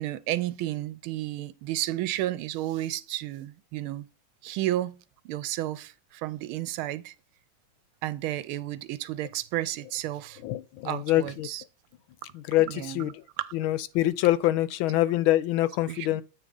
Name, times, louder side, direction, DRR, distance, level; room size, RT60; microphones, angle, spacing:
voice 1, 0.0-4.1 4.4-5.0 5.2-7.1 8.0-10.4 10.8-11.6 12.6-13.1 13.4-13.5 15.9-16.2, right 14 dB, 85° right, 1.4 m, -32 dB
voice 2, 10.4-11.5 12.3-13.1 13.5-16.2, left 15 dB, 80° left, 1.3 m, -25 dB
8.3 x 3.5 x 3.8 m
omnidirectional pair, 2.3 m